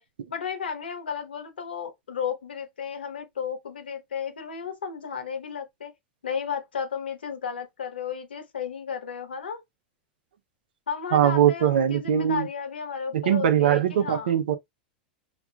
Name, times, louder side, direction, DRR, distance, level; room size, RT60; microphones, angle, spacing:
voice 1, 0.3-5.9 6.2-9.6 10.9-14.3, left 7 dB, 90° left, 1.1 m, -33 dB
voice 2, 11.1-12.5 13.1-14.5, right 10 dB, 80° right, 0.6 m, -21 dB
5.8 x 2.4 x 2.3 m
hypercardioid pair, 100°, 5 cm